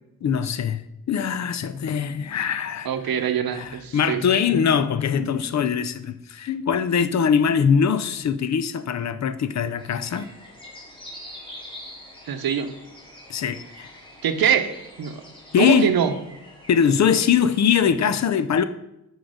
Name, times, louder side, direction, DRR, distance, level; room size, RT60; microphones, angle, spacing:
voice 1, 0.2-0.8 1.1-2.9 3.5-10.3 13.3-13.9 15.5-15.9 16.7-18.6, left 7 dB, 50° left, 0.5 m, -22 dB
voice 2, 2.8-4.2 12.3-12.7 14.2-14.7 15.0-15.2 15.6-16.1, right 8 dB, 80° right, 0.8 m, -23 dB
sound 1, 9.8-17.9, left 1 dB, 15° left, 2.1 m, -44 dB
6.3 x 4.8 x 4.9 m
wide cardioid pair, 110°, 35 cm